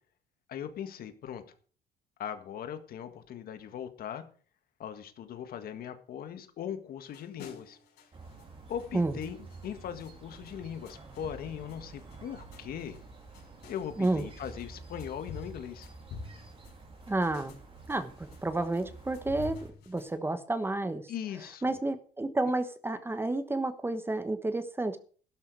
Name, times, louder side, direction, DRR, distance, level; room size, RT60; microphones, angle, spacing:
voice 1, 0.5-1.4 2.2-4.3 4.8-7.8 8.7-9.4 9.6-13.0 13.7-15.9 21.1-21.8, left 9 dB, 60° left, 9 dB, 1.7 m, -39 dB
sound 1, 7.1-20.2, left 5 dB, 75° left, 5.5 m, -50 dB
sound 2, 8.1-19.7, right 3 dB, 30° right, 3.4 m, -49 dB
voice 2, 17.1-17.5 17.9-21.0 21.6-25.0, right 2 dB, 15° right, 11 dB, 1.2 m, -30 dB
12.0 x 12.0 x 4.7 m, 0.43 s
cardioid pair, 110°, 17 cm